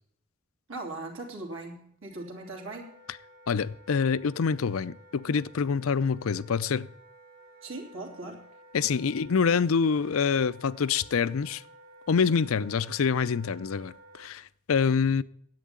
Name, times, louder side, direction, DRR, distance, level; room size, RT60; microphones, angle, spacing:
voice 1, 0.7-3.0 7.6-8.5, right 2 dB, 75° right, 3.1 m, -39 dB
Wind instrument woodwind instrument, 2.1-14.3, right 1 dB, 45° right, 2.3 m, -54 dB
voice 2, 3.5-6.9 8.7-11.6 12.1-15.2, left 6 dB, 80° left, 0.5 m, -26 dB
10.5 x 8.4 x 8.8 m
head